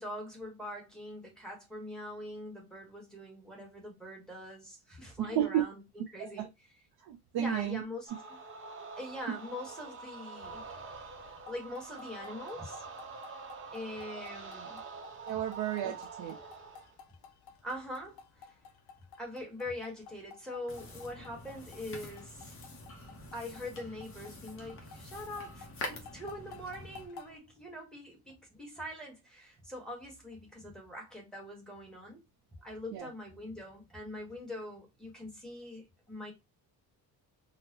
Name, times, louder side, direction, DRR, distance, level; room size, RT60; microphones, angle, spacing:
voice 1, 0.0-6.5 7.4-8.4 9.0-10.7 11.2-12.8 13.7-14.8 15.8-16.0 17.6-18.5 19.2-22.5 23.3-32.2 32.6-36.3, left 1 dB, ahead, 1.0 m, -43 dB
voice 2, 5.2-5.6 6.2-6.5 7.0-7.8 9.3-9.4 15.2-16.3 32.9-33.1, right 11 dB, 75° right, 0.6 m, -32 dB
sound 1, 8.1-17.0, right 4 dB, 30° right, 0.7 m, -46 dB
sound 2, 10.4-27.4, left 6 dB, 75° left, 0.6 m, -55 dB
sound 3, 20.7-27.0, left 2 dB, 35° left, 0.8 m, -46 dB
3.8 x 2.1 x 2.7 m
wide cardioid pair, 170°, 38 cm